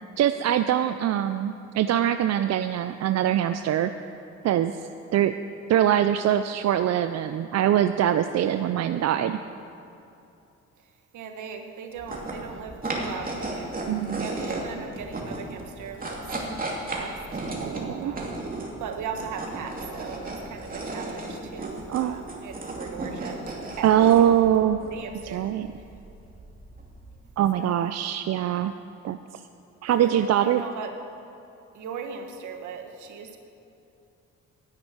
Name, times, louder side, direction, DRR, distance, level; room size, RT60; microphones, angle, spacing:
voice 1, 0.2-3.9 4.4-4.8 5.1-5.3 5.7-9.4 13.9-14.3 17.6-18.1 21.9-22.2 23.8-24.8 25.3-25.7 27.4-28.7 29.0-29.4 29.8-30.6, right 10 dB, 60° right, 10 dB, 0.5 m, -23 dB
voice 2, 11.1-13.9 14.2-17.4 18.0-18.5 18.8-24.3 24.9-25.4 27.5-27.8 29.9-30.9 31.7-33.4, right 6 dB, 75° right, 5 dB, 1.4 m, -39 dB
sound 1, 12.0-27.3, right 2 dB, 30° right, 2.5 m, -35 dB
10.5 x 8.0 x 8.8 m, 2.7 s
cardioid pair, 90°, 30 cm